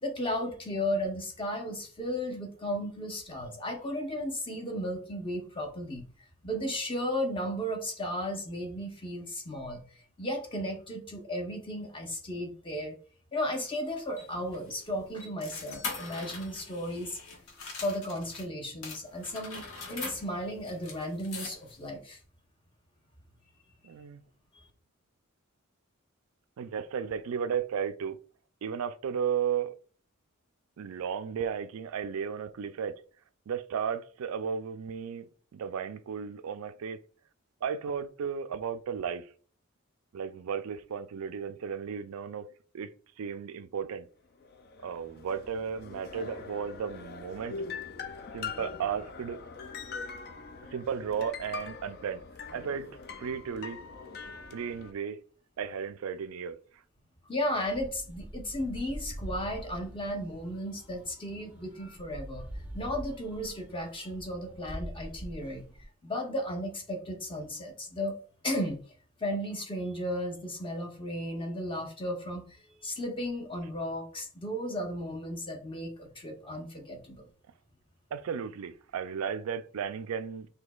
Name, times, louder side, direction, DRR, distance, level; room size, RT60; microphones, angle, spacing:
voice 1, 0.0-6.0 6.4-9.8 10.2-13.0 13.3-17.2 17.8-22.2 57.3-62.5 62.7-65.6 66.0-68.2 68.4-68.8 69.2-72.4 72.8-77.3, equal, 25° left, 0.8 m, -34 dB
sound 1, 13.7-18.5 18.8-21.9, left 4 dB, 85° left, 1.1 m, -43 dB
voice 2, 23.8-24.2 26.6-28.2 28.6-29.8 30.8-33.0 33.5-37.0 37.6-39.3 40.1-42.5 42.7-42.9 43.2-44.1 44.8-47.6 48.3-49.4 50.7-52.2 52.5-52.9 53.2-53.8 54.5-55.2 55.6-56.6 78.1-80.5, right 7 dB, 80° right, 0.4 m, -34 dB
sound 2, 44.4-54.9, left 5 dB, 45° left, 0.4 m, -43 dB
sound 3, 57.7-65.9, equal, 5° right, 0.5 m, -44 dB
6.1 x 2.7 x 2.3 m
head